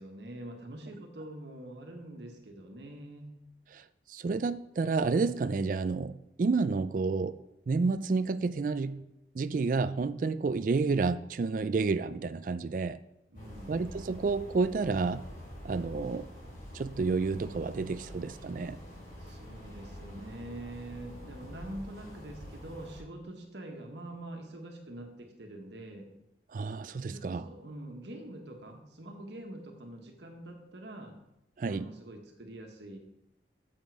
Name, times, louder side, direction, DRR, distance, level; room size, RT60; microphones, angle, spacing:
voice 1, 0.0-3.3 13.3-13.8 19.2-26.1 27.1-31.1 31.7-33.0, right 1 dB, 75° right, 3 dB, 1.4 m, -45 dB
voice 2, 3.7-7.4 7.7-9.0 9.3-13.0 13.7-15.2 15.6-16.3 16.7-18.8 26.5-27.5 31.6-31.9, right 4 dB, 45° right, 13 dB, 0.3 m, -30 dB
sound 1, 13.3-23.0, equal, 45° left, 4.0 m, -46 dB
9.1 x 7.2 x 4.7 m, 0.85 s
head